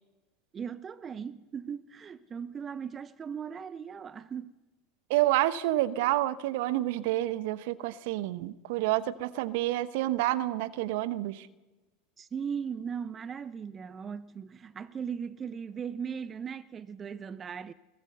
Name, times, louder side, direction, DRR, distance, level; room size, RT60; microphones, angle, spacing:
voice 1, 0.5-4.5 12.2-17.7, right 7 dB, 30° right, 0.7 m, -38 dB
voice 2, 5.1-11.5, right 15 dB, 65° right, 1.1 m, -28 dB
22.0 x 19.5 x 6.8 m
hypercardioid pair, 80°, 0 cm